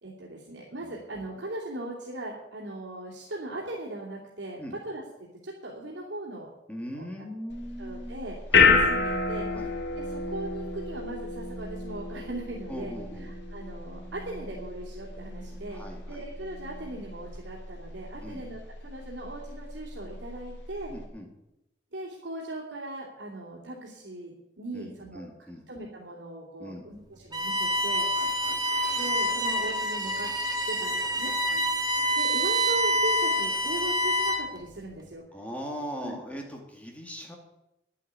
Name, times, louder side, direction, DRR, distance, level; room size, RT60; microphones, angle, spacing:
voice 1, 0.0-5.0 5.4-6.5 6.9-8.4 8.6-9.5 9.9-12.9 13.2-20.9 21.9-25.3 25.7-28.1 29.0-30.3 30.7-31.3 32.2-35.2 36.0-36.1, right 2 dB, 85° right, -4 dB, 2.8 m, -39 dB
voice 2, 6.7-8.2 8.5-8.7 9.5-9.7 12.7-13.3 15.7-16.3 18.2-18.4 20.9-21.3 24.7-25.7 26.6-26.9 28.2-28.6 31.5-31.6 35.3-37.4, equal, 10° left, 1 dB, 2.2 m, -40 dB
sound 1, 7.5-21.0, left 4 dB, 75° left, 2.2 m, -30 dB
Bowed string instrument, 27.3-34.6, equal, 20° right, 1.5 m, -27 dB
10.5 x 8.4 x 9.4 m, 0.91 s
head